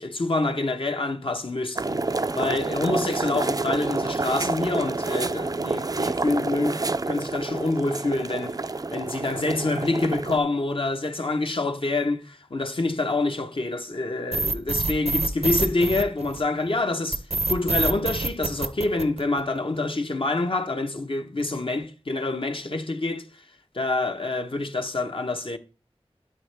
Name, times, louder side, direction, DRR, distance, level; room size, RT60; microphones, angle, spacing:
voice 1, 0.0-8.6 8.9-17.2 17.5-23.2 23.7-25.6, left 2 dB, 55° left, 1.0 m, -27 dB
sound 1, 1.8-10.4, right 3 dB, 35° right, 0.4 m, -28 dB
sound 2, 14.3-16.6 17.1-19.6, right 3 dB, 80° right, 0.7 m, -25 dB
9.5 x 8.8 x 3.4 m
wide cardioid pair, 45°, 11 cm